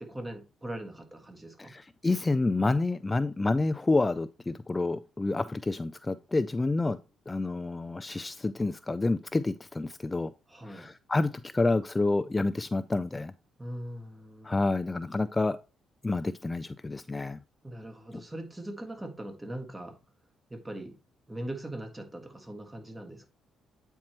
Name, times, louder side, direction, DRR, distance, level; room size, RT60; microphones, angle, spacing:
voice 1, 0.0-1.7 10.5-10.9 13.6-14.6 17.6-20.0 20.5-20.9 21.3-23.3, right 1 dB, 15° right, 1.6 m, -40 dB
voice 2, 1.6-7.0 7.3-10.3 10.7-13.3 14.4-15.6 16.0-17.4 18.1-18.2, left 2 dB, 20° left, 0.3 m, -28 dB
8.5 x 4.5 x 3.0 m
cardioid pair, 90°, 0 cm